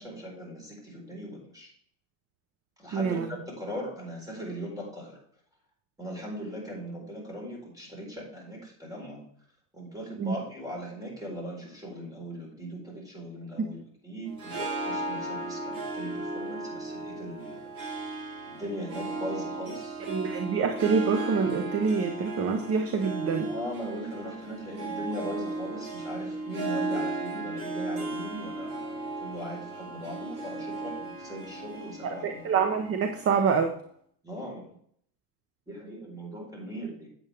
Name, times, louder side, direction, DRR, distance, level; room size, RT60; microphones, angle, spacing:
voice 1, 0.0-1.7 2.8-5.2 6.0-9.3 9.7-17.6 18.5-20.0 23.5-32.4 34.2-34.7 35.7-37.1, equal, 10° right, -2 dB, 4.2 m, -39 dB
voice 2, 2.9-3.3 10.2-10.3 13.6-13.7 20.1-23.5 32.0-33.7, right 5 dB, 30° right, 6 dB, 0.9 m, -26 dB
Harp, 14.3-33.6, right 2 dB, 45° right, 3.9 m, -35 dB
8.9 x 8.1 x 3.4 m, 0.63 s
supercardioid pair, 130°, 45 cm